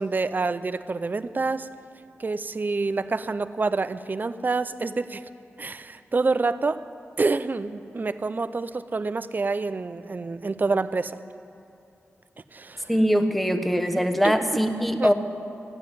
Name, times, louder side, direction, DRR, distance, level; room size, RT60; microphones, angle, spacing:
voice 1, 0.0-1.7 2.2-5.2 5.6-6.8 7.2-11.2 12.5-12.9 13.9-14.3 15.0-15.1, right 3 dB, 40° right, 13 dB, 0.5 m, -27 dB
voice 2, 12.9-15.1, equal, ahead, 6 dB, 1.0 m, -22 dB
14.5 x 7.5 x 9.8 m, 2.7 s
wide cardioid pair, 80°, 5 cm